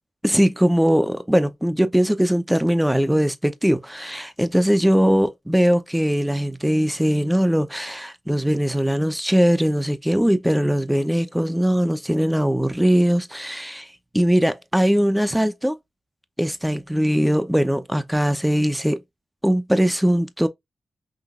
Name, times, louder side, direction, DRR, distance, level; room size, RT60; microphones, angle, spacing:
voice 1, 0.2-13.9 14.1-15.8 16.4-19.0 19.4-20.5, equal, 5° right, 0.7 m, -20 dB
5.9 x 2.6 x 2.4 m
cardioid pair, 75°, 0 cm